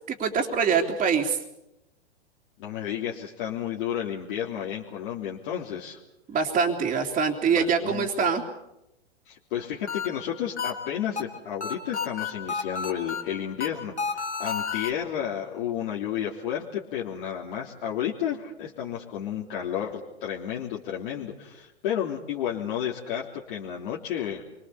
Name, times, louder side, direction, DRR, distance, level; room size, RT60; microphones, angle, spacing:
voice 1, 0.1-1.4 6.3-8.4, right 6 dB, 20° right, -5 dB, 3.1 m, -24 dB
voice 2, 2.6-6.0 7.5-8.1 9.2-24.4, left 9 dB, 50° left, -3 dB, 3.4 m, -32 dB
sound 1, 9.5-14.9, left 5 dB, 90° left, 3.6 m, -32 dB
28.0 x 24.0 x 7.1 m, 0.89 s
hypercardioid pair, 110°, 33 cm